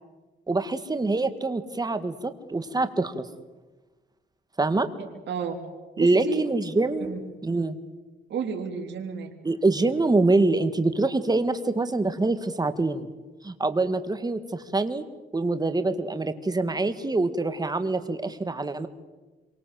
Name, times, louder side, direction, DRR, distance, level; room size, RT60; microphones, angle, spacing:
voice 1, 0.5-3.3 4.6-4.9 6.0-7.1 7.4-7.8 9.4-13.1 13.4-15.0 15.3-18.9, right 2 dB, 20° right, 10 dB, 2.1 m, -25 dB
voice 2, 5.0-5.6 6.0-6.4 7.0-7.2 8.3-9.3, right 6 dB, 65° right, 1 dB, 3.7 m, -32 dB
27.0 x 24.0 x 7.9 m, 1.2 s
cardioid pair, 90°, 20 cm